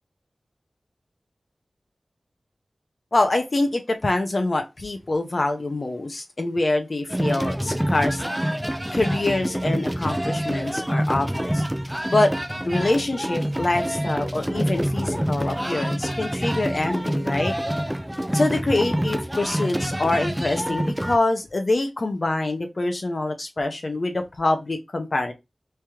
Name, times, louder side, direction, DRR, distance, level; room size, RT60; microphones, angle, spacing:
voice 1, 3.1-8.5 8.9-11.6 12.1-12.3 12.6-17.5 18.3-25.3, left 2 dB, 55° left, 0.8 m, -25 dB
sound 1, 7.1-21.2, equal, 5° right, 0.4 m, -26 dB
3.4 x 3.0 x 3.5 m
wide cardioid pair, 75°, 0 cm